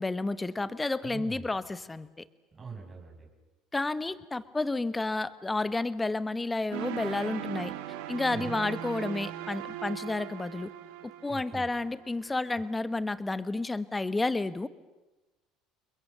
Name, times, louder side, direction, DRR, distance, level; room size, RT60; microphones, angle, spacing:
voice 1, 0.0-2.1 3.7-7.7 8.1-10.7 11.2-14.7, left 2 dB, 15° left, 15 dB, 1.1 m, -31 dB
voice 2, 1.0-1.5 2.5-3.3 8.3-8.6 11.3-11.7, right 5 dB, 25° right, 0 dB, 6.0 m, -42 dB
sound 1, 6.7-12.6, right 12 dB, 90° right, 1.8 m, -39 dB
29.0 x 22.0 x 6.8 m, 1.1 s
supercardioid pair, 110°, 0 cm